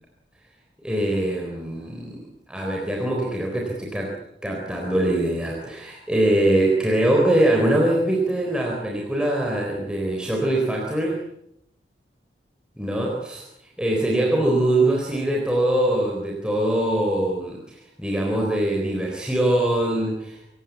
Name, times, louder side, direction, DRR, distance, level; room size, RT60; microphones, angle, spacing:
voice 1, 0.8-4.1 4.4-11.2 12.8-13.5 13.8-20.4, right 1 dB, 5° right, -1 dB, 4.0 m, -23 dB
27.5 x 16.0 x 8.4 m, 0.80 s
head